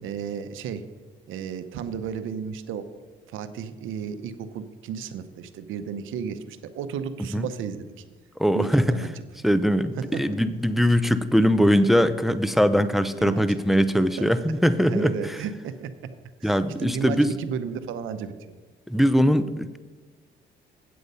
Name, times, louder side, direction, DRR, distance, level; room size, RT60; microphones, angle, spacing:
voice 1, 0.0-0.8 1.3-3.0 3.3-8.0 8.5-9.1 10.0-10.4 13.2-13.4 14.9-15.9 16.4-18.6, right 7 dB, 85° right, 11 dB, 0.8 m, -33 dB
voice 2, 8.4-9.0 9.4-15.4 16.4-17.3 18.9-19.8, equal, ahead, 12 dB, 0.5 m, -21 dB
8.5 x 7.9 x 5.4 m, 1.3 s
cardioid pair, 90°, 20 cm